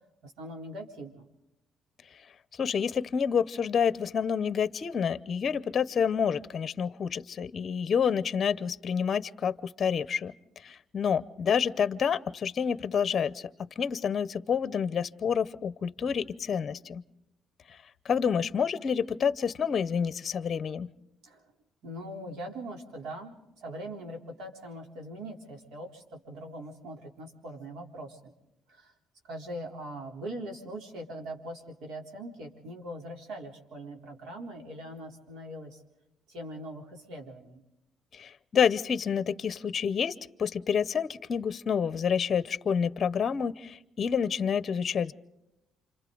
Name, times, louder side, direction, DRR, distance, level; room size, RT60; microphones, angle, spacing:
voice 1, 0.2-1.3 21.2-21.4 21.8-28.3 28.7-28.9 29.2-35.8 36.3-37.6, right 1 dB, 80° right, 2 dB, 3.7 m, -41 dB
voice 2, 2.6-10.3 10.6-17.0 17.7-17.8 18.0-20.9 38.1-45.1, left 7 dB, 40° left, 16 dB, 0.8 m, -28 dB
29.0 x 26.5 x 3.9 m, 0.90 s
cardioid pair, 125°, 0 cm